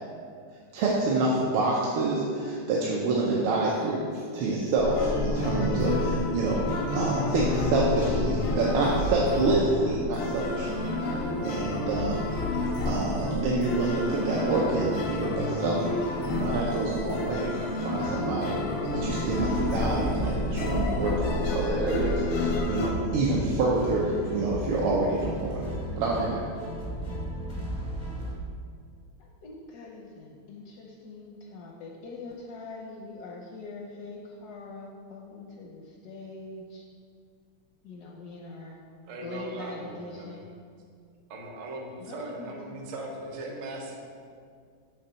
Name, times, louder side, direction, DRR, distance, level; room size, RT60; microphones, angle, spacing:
voice 1, 0.7-10.8 11.4-12.3 12.8-15.8 16.3-18.6 18.9-25.7 26.0-26.4, right 2 dB, 85° right, -3 dB, 1.5 m, -27 dB
sound 1, 4.8-22.9, left 2 dB, 90° left, 1.7 m, -30 dB
sound 2, 19.0-28.3, right 1 dB, 25° left, 0.3 m, -35 dB
voice 2, 29.4-36.8 37.9-38.8 39.2-40.5 42.1-42.8, left 3 dB, 75° left, -1 dB, 0.9 m, -43 dB
voice 3, 39.0-40.4 41.3-44.0, right 2 dB, 55° right, 1 dB, 0.8 m, -39 dB
7.0 x 3.4 x 5.5 m, 2.2 s
omnidirectional pair, 2.3 m